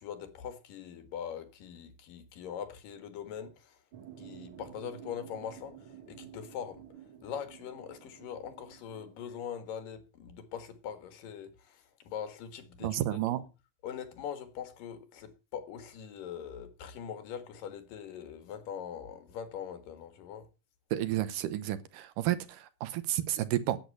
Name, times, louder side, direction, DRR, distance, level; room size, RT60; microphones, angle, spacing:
voice 1, 0.0-3.8 4.2-13.0 13.3-13.4 13.8-20.5, left 8 dB, 75° left, 3.2 m, -42 dB
sound 1, 3.9-9.4, right 10 dB, 55° right, 1.7 m, -51 dB
voice 2, 12.8-13.4 20.9-23.8, right 13 dB, 75° right, 2.5 m, -31 dB
10.5 x 8.6 x 6.5 m
omnidirectional pair, 4.0 m